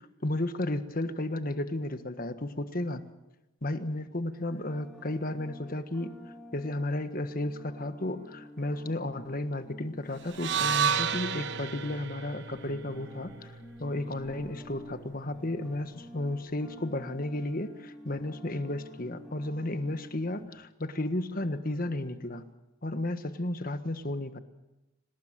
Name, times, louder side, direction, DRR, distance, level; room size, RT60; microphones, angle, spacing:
voice 1, 0.2-3.0 3.6-6.1 6.5-13.5 13.8-22.5 22.8-24.4, left 1 dB, 40° left, 10 dB, 1.5 m, -33 dB
sound 1, 4.3-20.5, equal, ahead, 5.9 m, -50 dB
sound 2, 10.3-14.5, right 7 dB, 55° right, 1.1 m, -32 dB
26.5 x 19.0 x 7.6 m, 0.99 s
head